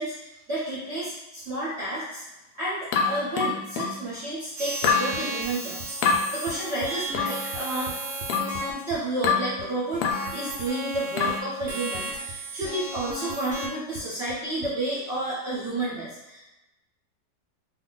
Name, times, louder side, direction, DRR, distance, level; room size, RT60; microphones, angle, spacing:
voice 1, 0.0-2.2 2.5-7.9 8.7-16.5, right 2 dB, 50° right, -8 dB, 0.8 m, -31 dB
sound 1, 2.9-4.0 4.8-5.1 6.0-6.2 7.1-7.4 8.3-8.6 9.2-9.5 10.0-10.3 11.2-11.5, left 6 dB, 75° left, 1.1 m, -25 dB
sound 2, 4.6-8.7 9.9-11.4 11.7-13.7, right 1 dB, 90° right, 0.6 m, -34 dB
sound 3, 4.8-7.2 7.5-9.3 9.6-10.7 10.9-12.0 12.3-12.7 13.0-14.7, right 2 dB, 70° right, 1.0 m, -41 dB
2.7 x 2.5 x 3.9 m, 0.99 s
omnidirectional pair, 2.0 m